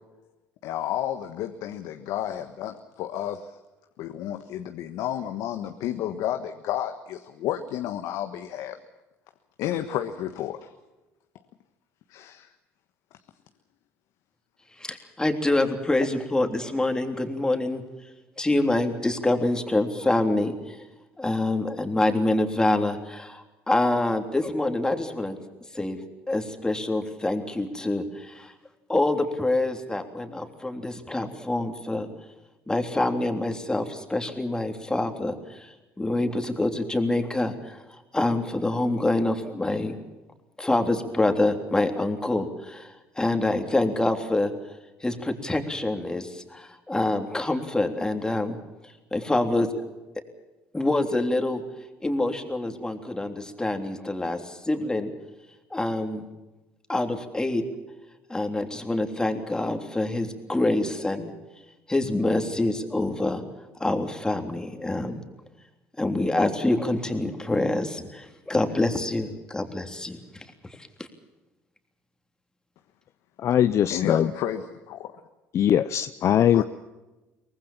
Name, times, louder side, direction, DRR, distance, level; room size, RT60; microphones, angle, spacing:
voice 1, 0.6-3.6 4.0-8.8 9.6-10.7 12.1-12.5 73.9-75.2 76.5-76.6, left 11 dB, 75° left, 7 dB, 1.4 m, -31 dB
voice 2, 14.8-17.8 18.4-20.8 21.2-25.4 25.7-26.0 26.3-28.5 28.9-32.1 32.7-40.0 40.6-44.5 45.0-48.6 48.8-49.9 50.7-51.6 52.0-55.1 55.7-56.3 56.9-57.6 58.3-61.3 61.9-63.4 63.8-65.2 66.0-71.1, left 2 dB, 10° left, 5 dB, 3.4 m, -26 dB
voice 3, 73.4-74.3 75.5-76.6, left 10 dB, 55° left, 12 dB, 0.7 m, -21 dB
24.0 x 19.0 x 7.4 m, 1.1 s
supercardioid pair, 90°, 6 cm